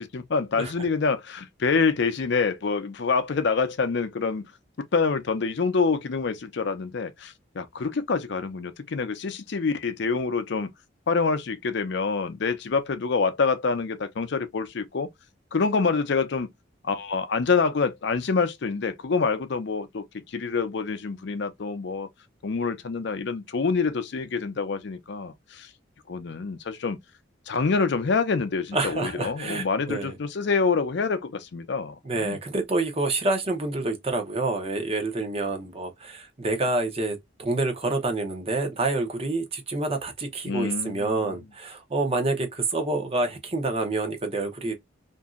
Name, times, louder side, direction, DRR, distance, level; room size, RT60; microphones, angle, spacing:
voice 1, 0.0-4.4 4.9-10.7 11.1-15.1 15.5-16.5 16.8-22.1 22.4-25.7 26.1-27.0 27.5-32.4 40.5-41.4, left 4 dB, 60° left, 0.5 m, -26 dB
voice 2, 28.7-30.1 32.0-44.7, right 2 dB, 30° right, 0.7 m, -27 dB
2.8 x 2.6 x 2.4 m
head